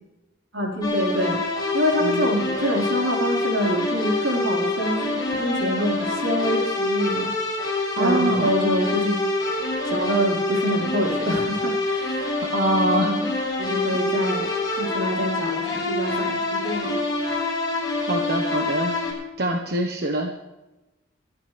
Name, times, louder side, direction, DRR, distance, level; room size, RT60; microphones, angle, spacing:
voice 1, 0.5-1.4 1.7-7.3 8.0-9.2 9.9-12.3 12.7-13.2 13.6-14.5 14.8-17.0, equal, 85° right, -1 dB, 5.0 m, -26 dB
sound 1, 0.8-19.1, left 2 dB, 20° left, 7.0 m, -26 dB
voice 2, 8.0-8.5 12.5-13.1 18.1-19.0 19.4-20.3, right 1 dB, 55° right, 2 dB, 1.4 m, -24 dB
24.5 x 12.5 x 3.5 m, 1.0 s
head